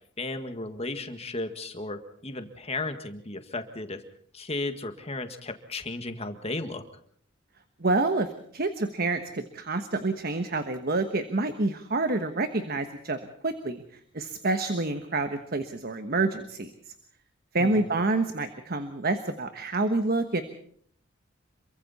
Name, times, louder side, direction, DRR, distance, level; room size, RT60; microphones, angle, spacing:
voice 1, 0.2-4.0 4.3-6.8 17.6-17.9, left 2 dB, 30° left, 8 dB, 1.7 m, -34 dB
voice 2, 7.8-8.3 8.5-13.2 13.4-13.8 14.1-16.7 17.5-20.4, right 2 dB, 50° right, 8 dB, 1.3 m, -27 dB
27.5 x 23.5 x 4.2 m, 0.62 s
head